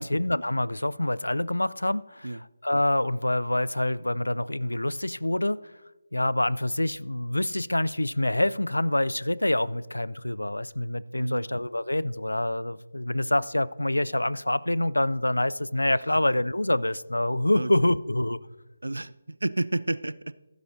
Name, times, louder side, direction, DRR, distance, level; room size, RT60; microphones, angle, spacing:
voice 1, 0.0-2.3 2.6-5.6 6.1-18.4, left 1 dB, 80° left, 0.4 m, -26 dB
voice 2, 11.2-11.5 17.5-17.9 18.8-20.3, right 2 dB, 75° right, 0.4 m, -31 dB
14.5 x 12.0 x 2.6 m
figure-of-eight pair, 155°, 0 cm